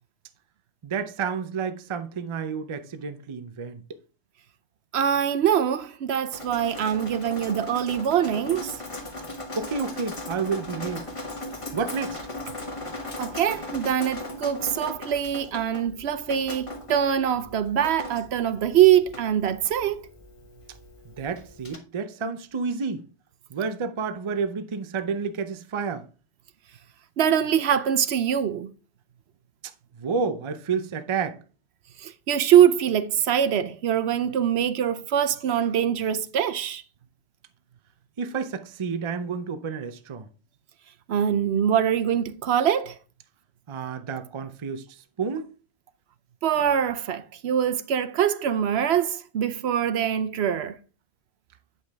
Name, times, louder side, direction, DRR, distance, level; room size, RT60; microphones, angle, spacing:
voice 1, 0.8-3.8 9.6-11.0 11.7-12.2 21.2-23.0 23.5-26.0 30.0-31.4 38.2-40.3 43.7-44.8 45.2-45.5, right 5 dB, 35° right, 0.5 m, -30 dB
voice 2, 4.9-8.8 13.2-20.0 27.2-28.7 32.0-36.8 41.1-43.0 46.4-50.8, right 9 dB, 70° right, 0.8 m, -23 dB
Drip, 6.3-21.8, left 1 dB, 30° left, 1.3 m, -38 dB
8.5 x 5.4 x 3.4 m
omnidirectional pair, 1.2 m